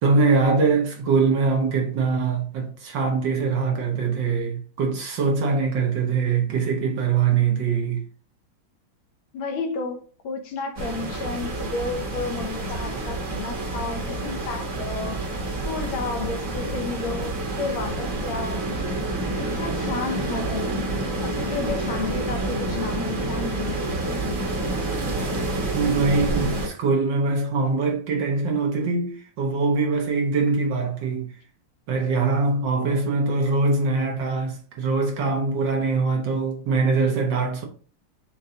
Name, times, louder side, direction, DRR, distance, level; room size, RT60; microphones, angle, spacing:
voice 1, 0.0-8.0 25.7-31.3 31.9-37.6, right 4 dB, 65° right, 1.3 m, -23 dB
voice 2, 9.3-15.3 15.6-18.7 19.3-20.9 21.2-24.0, left 4 dB, 75° left, 1.3 m, -32 dB
sound 1, 10.8-26.7, right 2 dB, 45° right, 1.3 m, -28 dB
6.5 x 2.2 x 2.7 m
omnidirectional pair, 2.4 m